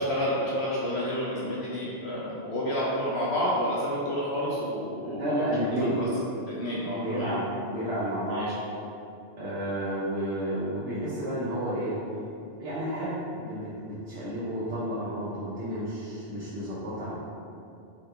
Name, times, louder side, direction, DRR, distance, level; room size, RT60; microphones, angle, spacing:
voice 1, 0.0-6.1 6.4-7.3 8.3-8.5, equal, 70° left, -7 dB, 1.0 m, -30 dB
voice 2, 5.0-6.0 6.9-7.4 7.7-8.5 9.4-11.9 12.6-17.1, equal, 60° right, -11 dB, 1.1 m, -31 dB
3.9 x 3.9 x 3.2 m, 2.6 s
omnidirectional pair, 1.2 m